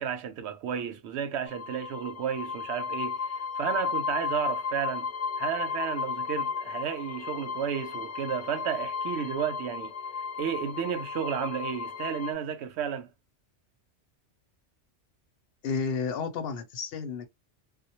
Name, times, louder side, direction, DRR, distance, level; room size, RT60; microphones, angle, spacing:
voice 1, 0.0-5.1 5.4-9.9 10.4-13.1, right 8 dB, 70° right, 0.8 m, -32 dB
sound 1, 1.5-12.3, left 5 dB, 85° left, 0.9 m, -34 dB
voice 2, 15.6-17.3, left 5 dB, 65° left, 0.8 m, -31 dB
2.2 x 2.1 x 2.8 m
omnidirectional pair, 1.2 m